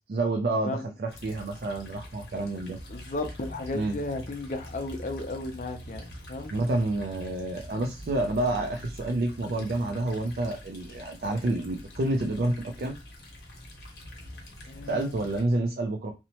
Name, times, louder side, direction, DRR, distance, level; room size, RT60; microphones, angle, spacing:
voice 1, 0.1-2.8 3.7-4.0 6.5-13.0 14.9-16.1, right 2 dB, 55° right, 0.4 m, -29 dB
sound 1, 1.1-15.4, equal, 65° left, 0.8 m, -45 dB
voice 2, 2.9-6.5 14.7-15.1, left 2 dB, 45° left, 0.5 m, -34 dB
2.9 x 2.0 x 2.8 m
head